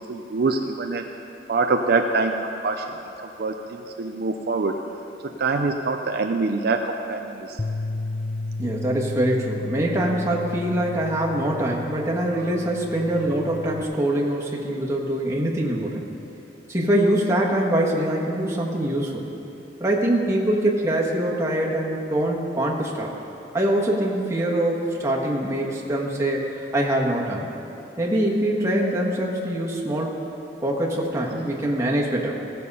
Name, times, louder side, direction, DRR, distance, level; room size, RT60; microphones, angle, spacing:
voice 1, 0.1-1.1 1.5-2.3 2.6-3.0 3.4-4.7 5.2-7.6, right 3 dB, 60° right, 4 dB, 0.5 m, -24 dB
Bass guitar, 7.6-13.8, left 2 dB, 25° left, 0.3 m, -33 dB
voice 2, 8.6-16.0 16.7-19.2 19.8-23.1 23.5-27.5 28.0-30.2 30.6-32.4, right 1 dB, 15° right, -3 dB, 1.5 m, -24 dB
16.5 x 6.8 x 5.5 m, 2.9 s
head